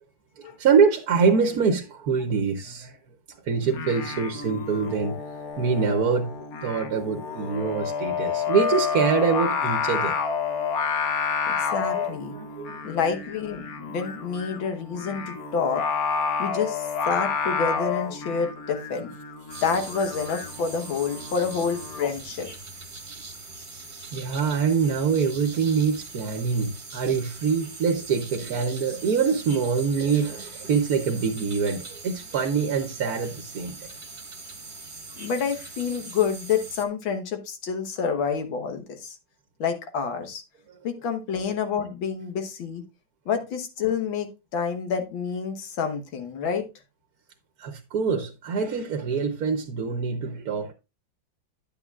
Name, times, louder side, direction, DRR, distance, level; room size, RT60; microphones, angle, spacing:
voice 1, 0.4-3.0 3.5-5.2 5.6-6.3 6.6-10.1 10.5-10.6 11.9-12.0 12.3-12.8 24.1-33.8 40.7-40.8 47.6-50.7, right 5 dB, 55° right, 1.3 m, -24 dB
Singing, 3.6-22.1, left 6 dB, 55° left, 1.3 m, -30 dB
voice 2, 11.5-12.4 12.8-15.8 16.4-19.1 19.6-22.5 35.2-39.1 39.6-40.4 40.8-42.8 43.3-46.7, left 6 dB, 80° left, 2.0 m, -28 dB
sound 1, 19.5-36.8, right 3 dB, 30° right, 1.3 m, -41 dB
10.0 x 8.7 x 2.4 m
omnidirectional pair, 2.1 m